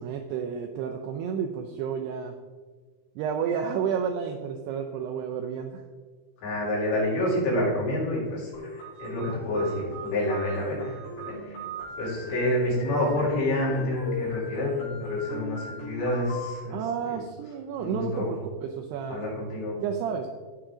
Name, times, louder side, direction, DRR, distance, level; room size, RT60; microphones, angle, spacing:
voice 1, 0.0-2.4 3.2-5.8 12.4-12.6 16.7-19.2 19.8-20.3, right 7 dB, 85° right, 4 dB, 2.4 m, -31 dB
voice 2, 6.4-11.6 12.0-16.8 17.1-17.2 17.8-18.3 19.1-19.8, left 1 dB, 70° left, -6 dB, 6.0 m, -28 dB
sound 1, 8.5-16.5, left 3 dB, 45° left, 4.4 m, -37 dB
16.5 x 5.9 x 3.8 m, 1.5 s
omnidirectional pair, 5.4 m